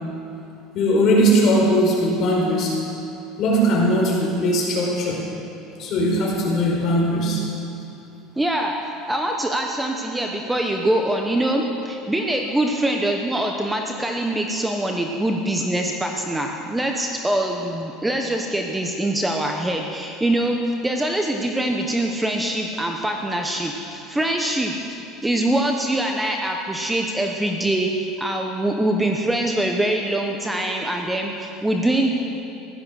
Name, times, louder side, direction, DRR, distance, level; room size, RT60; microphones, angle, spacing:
voice 1, 0.7-2.8 3.4-5.2 5.8-7.4, equal, 45° left, -2 dB, 4.7 m, -19 dB
voice 2, 8.4-8.7 9.1-32.2, right 1 dB, 5° right, 2 dB, 0.9 m, -24 dB
16.0 x 12.5 x 6.4 m, 2.7 s
cardioid pair, 140°, 0 cm